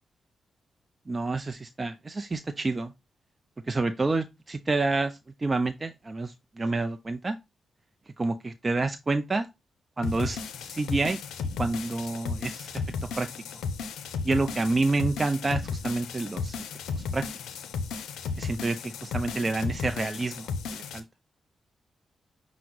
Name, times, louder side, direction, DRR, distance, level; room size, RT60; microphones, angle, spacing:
voice 1, 1.1-2.9 3.7-7.4 8.2-9.5 10.0-11.2 11.6-12.7 13.2-13.3 14.2-16.6 16.9-17.2 18.4-21.0, right 3 dB, 35° right, 0.4 m, -28 dB
sound 1, 10.0-21.0, left 5 dB, 85° left, 0.5 m, -34 dB
5.6 x 2.0 x 3.7 m
supercardioid pair, 50°, 0 cm